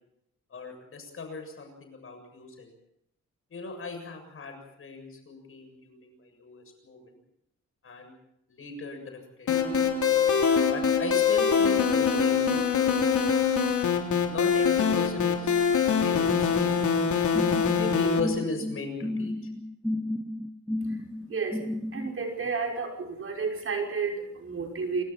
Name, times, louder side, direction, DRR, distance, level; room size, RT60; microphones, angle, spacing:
voice 1, 0.5-2.7 3.5-7.2 7.8-8.1 8.5-9.8 10.7-13.1 14.3-17.0 17.8-19.3, left 3 dB, 50° left, 5 dB, 7.4 m, -38 dB
sound 1, 9.5-18.2, left 6 dB, 90° left, 3.7 m, -24 dB
sound 2, 17.3-22.1, left 1 dB, 5° left, 0.9 m, -33 dB
voice 2, 21.3-21.6 21.9-25.0, right 4 dB, 50° right, 1 dB, 5.8 m, -31 dB
29.0 x 25.0 x 4.4 m, 0.77 s
wide cardioid pair, 175°, 29 cm